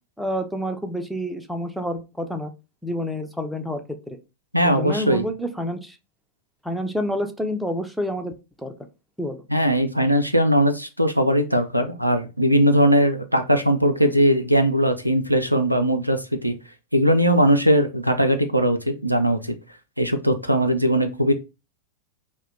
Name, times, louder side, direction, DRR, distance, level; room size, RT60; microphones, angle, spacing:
voice 1, 0.2-2.5 2.8-4.2 4.6-6.0 6.6-8.3 8.6-8.7 9.2-9.5, equal, ahead, 0.4 m, -28 dB
voice 2, 4.5-5.3 9.5-16.5 16.9-19.6 20.0-21.3, equal, 90° right, 0.4 m, -20 dB
2.8 x 2.2 x 3.7 m
figure-of-eight pair, 90°, 0 cm